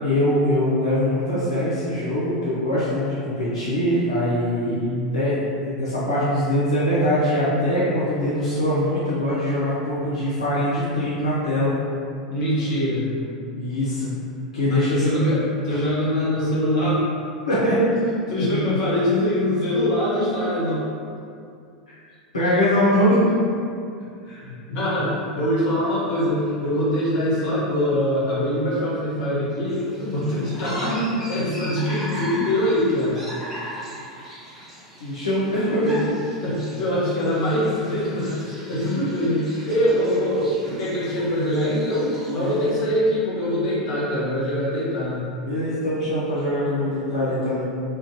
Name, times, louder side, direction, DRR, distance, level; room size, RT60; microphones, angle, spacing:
voice 1, 0.0-4.8 5.1-11.7 13.6-14.1 14.5-15.0 17.4-18.0 21.9-22.0 22.3-23.2 30.8-30.9 35.0-35.9 42.4-42.7 45.5-47.6, left 1 dB, 75° left, -11 dB, 0.6 m, -22 dB
voice 2, 4.6-5.1 12.3-13.1 14.6-17.1 18.3-20.9 24.2-30.9 31.3-33.2 35.8-38.4 38.7-45.3, left 1 dB, 50° left, -8 dB, 0.9 m, -23 dB
sound 1, 29.7-42.8, equal, 10° right, 1.1 m, -39 dB
2.5 x 2.2 x 2.6 m, 2.4 s
figure-of-eight pair, 85°, 3 cm